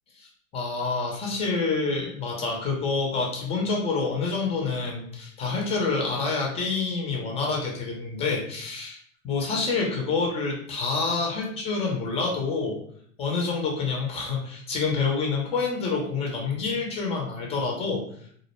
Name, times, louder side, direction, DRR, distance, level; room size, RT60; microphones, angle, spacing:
voice 1, 0.5-9.0 9.2-12.8 13.2-18.0, left 4 dB, 15° left, -1 dB, 0.4 m, -27 dB
2.4 x 2.1 x 2.9 m, 0.62 s
hypercardioid pair, 130°, 43 cm